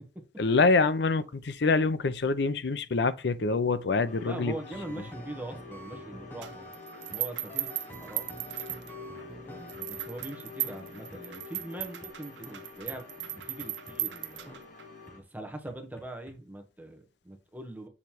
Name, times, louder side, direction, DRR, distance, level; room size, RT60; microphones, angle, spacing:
voice 1, 0.4-4.5, left 3 dB, 75° left, 0.6 m, -25 dB
sound 1, 4.1-15.2, left 4 dB, 45° left, 1.0 m, -47 dB
voice 2, 4.2-6.7 7.1-8.3 9.4-14.5 15.1-17.9, right 1 dB, 10° right, 1.1 m, -42 dB
sound 2, 4.6-7.2 7.5-10.3 10.6-10.8 11.1-11.2 11.6-12.1 12.5-12.6 12.9-13.0 13.4-14.0 14.5-14.6 15.1-15.2 15.7-16.4, right 1 dB, 10° left, 0.9 m, -48 dB
sound 3, 6.4-9.2 9.7-14.8, right 15 dB, 85° right, 0.5 m, -37 dB
7.3 x 3.2 x 4.5 m
head